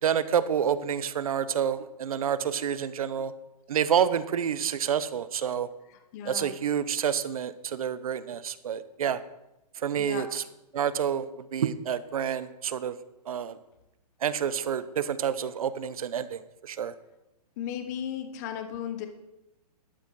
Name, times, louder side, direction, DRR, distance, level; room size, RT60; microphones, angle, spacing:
voice 1, 0.0-3.3 3.7-5.7 6.3-9.2 9.8-10.4 10.7-12.9 13.3-13.6 14.2-16.9, right 8 dB, 60° right, 14 dB, 0.9 m, -28 dB
voice 2, 5.9-6.6 10.0-10.3 17.6-19.1, left 9 dB, 25° left, 7 dB, 0.9 m, -36 dB
12.5 x 8.2 x 4.8 m, 0.92 s
hypercardioid pair, 160°, 20 cm